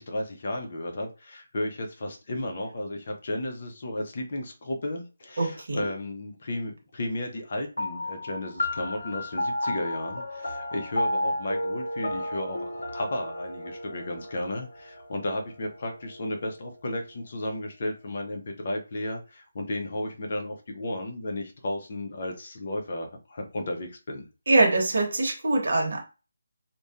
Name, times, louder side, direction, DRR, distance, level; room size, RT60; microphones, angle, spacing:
voice 1, 0.0-24.3, left 1 dB, 50° left, 3 dB, 0.6 m, -33 dB
voice 2, 5.4-5.9 24.5-26.0, right 2 dB, 60° right, 2 dB, 0.9 m, -23 dB
sound 1, 7.8-16.6, left 1 dB, 85° left, 0.7 m, -33 dB
2.6 x 2.2 x 2.4 m, 0.31 s
figure-of-eight pair, 160°, 0 cm